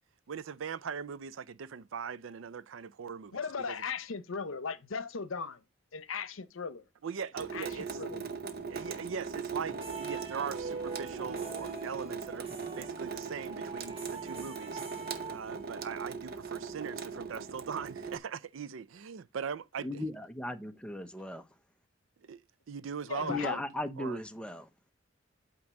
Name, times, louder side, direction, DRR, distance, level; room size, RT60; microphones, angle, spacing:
voice 1, 0.3-3.4 3.7-3.8 7.0-8.0 8.7-12.5 12.8-20.0 22.2-22.4 22.7-23.6 24.0-24.2, right 6 dB, 75° right, 0.4 m, -40 dB
voice 2, 3.3-5.6 5.9-6.8 7.5-7.7 8.0-8.2 23.1-23.6, left 5 dB, 80° left, 0.8 m, -37 dB
Water tap faucet / Sink (filling or washing) / Drip, 7.4-18.2, right 5 dB, 50° right, 0.8 m, -40 dB
sound 1, 9.7-16.0, right 4 dB, 30° right, 1.6 m, -44 dB
voice 3, 19.8-21.5 23.3-24.7, left 1 dB, 5° left, 0.6 m, -37 dB
8.6 x 3.0 x 6.1 m
head